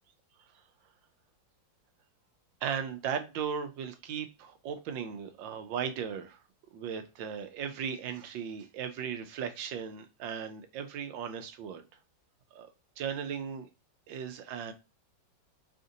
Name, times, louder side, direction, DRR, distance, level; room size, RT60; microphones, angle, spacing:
voice 1, 2.6-6.4 6.7-11.8 12.5-12.7 13.0-13.7 14.1-14.7, right 7 dB, 75° right, 1.4 m, -37 dB
5.0 x 2.5 x 2.6 m
omnidirectional pair, 2.1 m